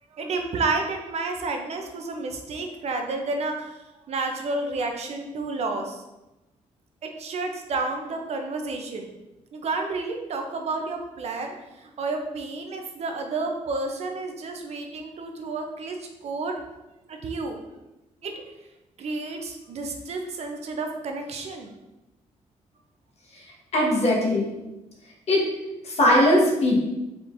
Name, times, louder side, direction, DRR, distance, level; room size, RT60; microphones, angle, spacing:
voice 1, 0.2-3.7 4.1-6.0 7.0-9.1 9.5-11.5 11.8-16.0 16.2-16.5 17.1-17.6 18.2-18.3 19.0-21.7, right 3 dB, 55° right, 3 dB, 0.6 m, -30 dB
voice 2, 23.7-24.5 25.3-25.4 26.0-26.8, left 1 dB, 55° left, -2 dB, 1.2 m, -19 dB
4.4 x 3.7 x 2.6 m, 1.0 s
cardioid pair, 100°, 13 cm